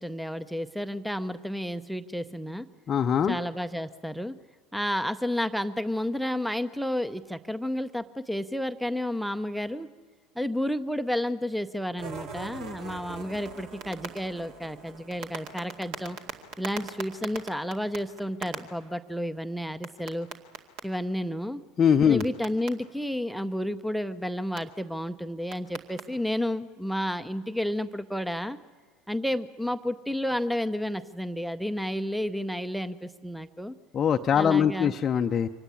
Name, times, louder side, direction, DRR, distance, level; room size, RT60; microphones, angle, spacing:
voice 1, 0.0-2.7 3.3-4.4 4.7-9.9 10.4-16.2 16.6-20.3 20.8-21.6 22.0-28.6 29.1-33.7 34.3-34.9, equal, ahead, 14 dB, 0.7 m, -31 dB
voice 2, 2.9-3.4 21.8-22.2 33.9-35.5, left 8 dB, 30° left, 6 dB, 0.7 m, -22 dB
sound 1, 12.0-18.6 19.8-20.8 22.2-22.7 24.6-24.7 25.5-26.0, right 5 dB, 55° right, 2.2 m, -39 dB
25.0 x 18.0 x 9.9 m, 1.5 s
figure-of-eight pair, 70°, 0 cm